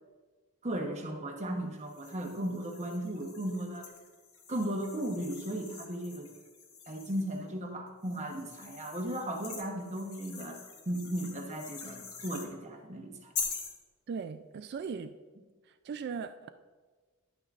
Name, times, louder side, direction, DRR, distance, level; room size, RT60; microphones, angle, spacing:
voice 1, 0.6-3.9 4.5-6.3 6.9-10.6 10.9-13.3, right 1 dB, 35° right, 2 dB, 1.0 m, -36 dB
sound 1, 1.8-7.4 8.0-12.5 13.3-13.8, left 5 dB, 80° left, 1.1 m, -44 dB
voice 2, 14.1-15.2 15.7-16.5, right 5 dB, 50° right, 10 dB, 0.3 m, -38 dB
10.5 x 8.8 x 2.5 m, 1.4 s
head